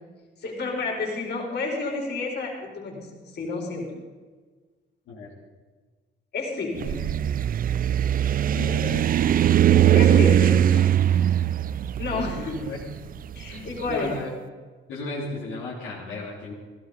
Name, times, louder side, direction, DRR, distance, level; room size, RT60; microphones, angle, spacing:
voice 1, 0.4-3.1 3.3-3.9 6.3-7.0 9.9-10.7 12.0-12.6 13.3-14.1, left 3 dB, 55° left, -1 dB, 4.8 m, -30 dB
sound 1, 6.8-13.9, right 10 dB, 45° right, 0.4 m, -20 dB
voice 2, 8.5-9.0 9.7-10.0 10.7-10.8 11.1-11.3 12.1-12.8 13.5-14.3 14.9-16.5, left 3 dB, 85° left, -6 dB, 3.3 m, -35 dB
16.0 x 13.5 x 5.4 m, 1.4 s
cardioid pair, 90°, 20 cm